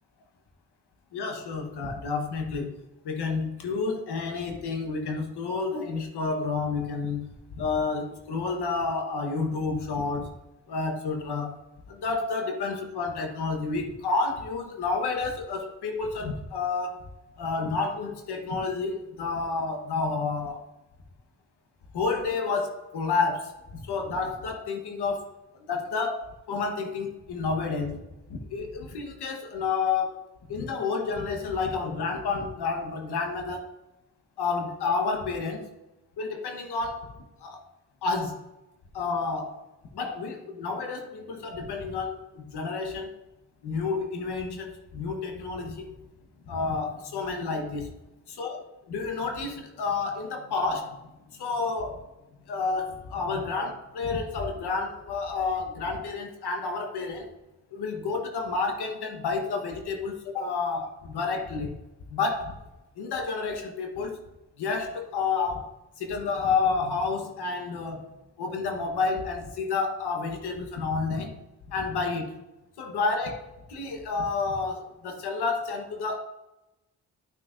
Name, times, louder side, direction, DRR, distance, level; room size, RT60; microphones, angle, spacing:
voice 1, 1.1-2.8 3.0-10.3 10.7-11.6 11.9-17.0 17.4-20.6 21.9-28.0 28.3-33.7 34.4-35.7 36.2-37.1 37.4-37.6 38.0-38.4 38.9-39.6 39.9-43.1 43.6-46.0 46.5-47.9 48.3-52.1 52.5-57.3 57.7-61.8 62.1-62.6 63.0-64.2 64.6-68.1 68.4-71.4 71.7-72.4 72.8-76.2, left 4 dB, 90° left, 3 dB, 1.3 m, -30 dB
11.5 x 6.2 x 2.6 m, 0.97 s
cardioid pair, 55°, 39 cm